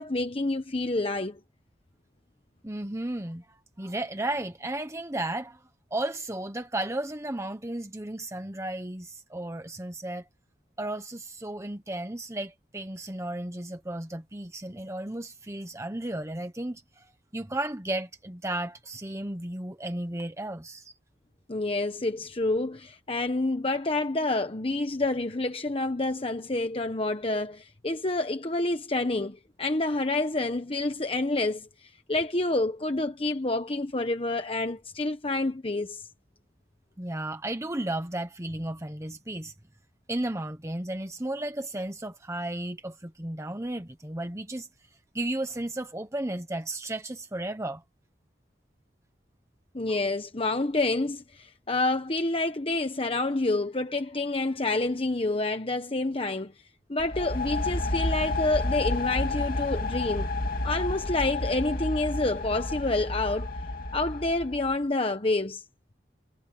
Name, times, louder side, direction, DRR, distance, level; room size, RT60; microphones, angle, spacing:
voice 1, 0.0-1.4 21.5-36.1 49.7-56.5 56.9-60.3 60.6-63.5 63.9-65.6, left 2 dB, 35° left, 1.1 m, -28 dB
voice 2, 2.6-5.6 5.9-10.2 10.8-20.9 37.0-39.5 40.1-44.7 45.1-47.8 49.9-50.0, right 1 dB, 15° right, 1.2 m, -34 dB
sound 1, 57.0-64.7, left 2 dB, 55° left, 2.9 m, -30 dB
head